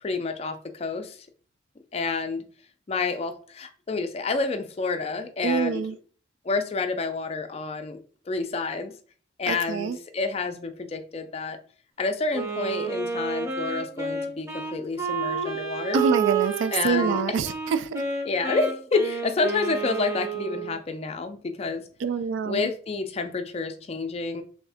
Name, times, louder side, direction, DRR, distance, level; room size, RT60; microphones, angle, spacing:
voice 1, 0.0-1.2 1.9-2.4 2.9-5.8 6.4-8.9 9.4-11.6 12.0-16.0 16.7-17.4 18.3-21.9 22.4-24.4, left 4 dB, 30° left, 8 dB, 0.3 m, -29 dB
voice 2, 5.4-6.0 9.5-10.0 15.9-18.0 22.0-22.7, right 5 dB, 80° right, 11 dB, 0.3 m, -26 dB
Wind instrument woodwind instrument, 12.3-20.8, right 5 dB, 15° right, 0.6 m, -30 dB
3.4 x 2.7 x 3.4 m, 0.43 s
head